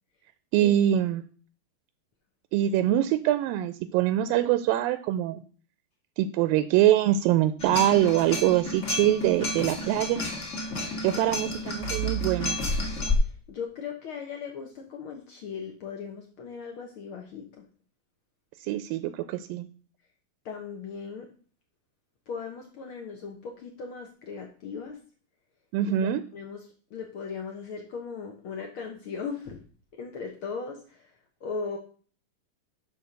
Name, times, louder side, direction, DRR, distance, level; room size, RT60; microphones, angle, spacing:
voice 1, 0.5-1.2 2.5-5.4 6.2-10.2 11.0-12.6 18.6-19.7 25.7-26.2, right 12 dB, 85° right, 11 dB, 2.3 m, -24 dB
sound 1, 7.6-13.1, left 1 dB, 35° left, 1.3 m, -31 dB
voice 2, 13.2-17.7 20.4-21.3 22.3-25.0 26.0-29.6 29.9-31.1 31.4-31.8, left 5 dB, 75° left, 2 dB, 1.2 m, -38 dB
11.0 x 3.9 x 6.5 m, 0.42 s
omnidirectional pair, 4.1 m